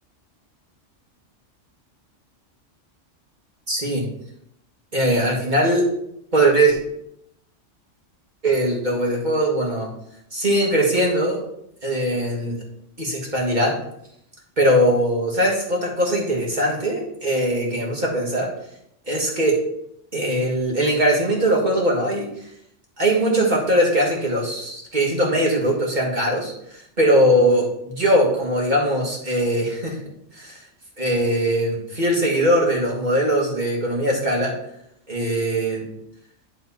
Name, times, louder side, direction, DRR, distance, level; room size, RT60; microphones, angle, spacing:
voice 1, 3.7-4.1 4.9-5.8 6.3-6.8 8.4-9.9 10.3-11.4 11.8-12.5 13.0-13.7 14.6-18.5 19.1-19.6 20.1-22.3 23.0-26.5 27.0-29.9 30.4-30.6 31.0-34.5 35.1-35.8, right 1 dB, 35° right, -1 dB, 1.8 m, -20 dB
10.5 x 3.7 x 4.2 m, 0.74 s
omnidirectional pair, 1.3 m